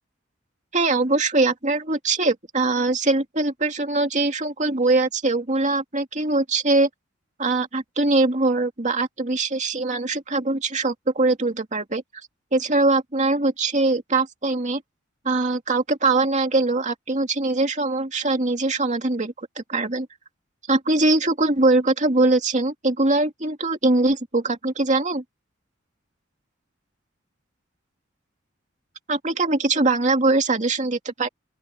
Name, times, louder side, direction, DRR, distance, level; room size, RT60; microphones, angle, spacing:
voice 1, 0.7-6.9 7.4-12.0 12.5-14.8 15.2-20.1 20.7-25.2 29.1-31.3, right 2 dB, 40° right, 2.5 m, -22 dB
open air
head